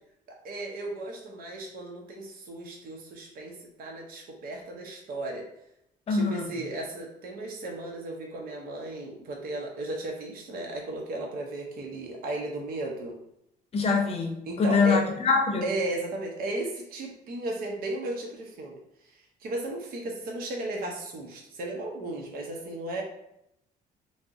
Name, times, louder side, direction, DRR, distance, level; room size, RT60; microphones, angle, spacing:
voice 1, 0.3-5.5 6.1-13.1 14.5-15.0 15.6-23.0, right 2 dB, 60° right, 0 dB, 0.6 m, -35 dB
voice 2, 6.1-6.5 13.7-15.7, left 4 dB, 35° left, 2 dB, 0.6 m, -24 dB
2.5 x 2.0 x 3.5 m, 0.79 s
cardioid pair, 110°, 17 cm